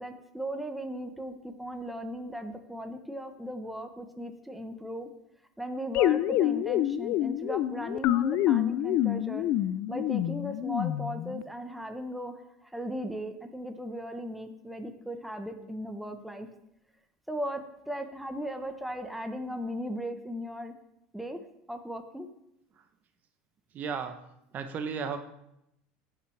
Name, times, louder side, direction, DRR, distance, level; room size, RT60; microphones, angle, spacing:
voice 1, 0.0-5.1 5.6-9.5 9.9-16.5 17.3-20.7 21.1-21.4 21.7-22.3, equal, ahead, 6 dB, 0.9 m, -37 dB
sound 1, 5.9-11.4, left 12 dB, 55° left, 0.4 m, -27 dB
voice 2, 23.7-24.1 24.5-25.2, right 6 dB, 40° right, 8 dB, 0.8 m, -34 dB
16.5 x 5.8 x 3.3 m, 0.82 s
supercardioid pair, 105°, 4 cm